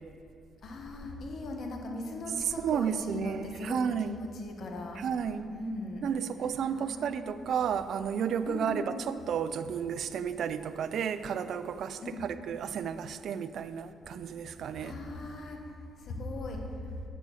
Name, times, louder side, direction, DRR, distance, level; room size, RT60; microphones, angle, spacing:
voice 1, 0.6-5.0 5.5-6.1 6.7-7.2 8.5-9.1 12.0-12.2 14.8-15.6 16.0-16.6, left 2 dB, 60° left, 2 dB, 1.2 m, -39 dB
voice 2, 2.6-4.2 5.0-5.5 6.0-15.0, right 7 dB, 65° right, 12 dB, 0.4 m, -32 dB
8.2 x 6.8 x 4.8 m, 2.3 s
cardioid pair, 90°, 0 cm